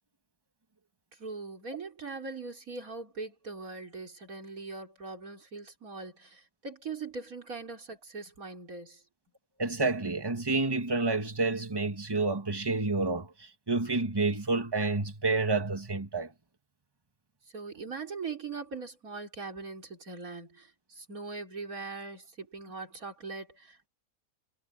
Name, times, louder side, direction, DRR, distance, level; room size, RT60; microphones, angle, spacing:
voice 1, 1.1-9.0 17.5-23.9, right 4 dB, 65° right, 4.1 m, -41 dB
voice 2, 9.6-16.3, right 3 dB, 15° right, 1.8 m, -29 dB
omnidirectional pair, 1.6 m